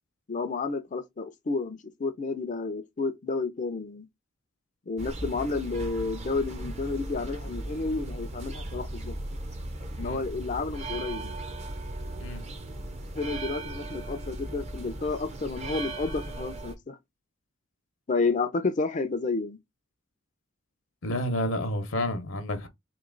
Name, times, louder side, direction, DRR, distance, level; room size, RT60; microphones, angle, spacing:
voice 1, 0.3-4.1 4.9-9.1 10.0-11.4 13.1-17.0 18.1-19.6, left 3 dB, 35° left, 0.5 m, -31 dB
sound 1, 5.0-16.8, right 1 dB, 30° right, 0.6 m, -37 dB
voice 2, 21.0-22.7, left 1 dB, 65° left, 0.8 m, -30 dB
3.0 x 2.8 x 3.8 m
head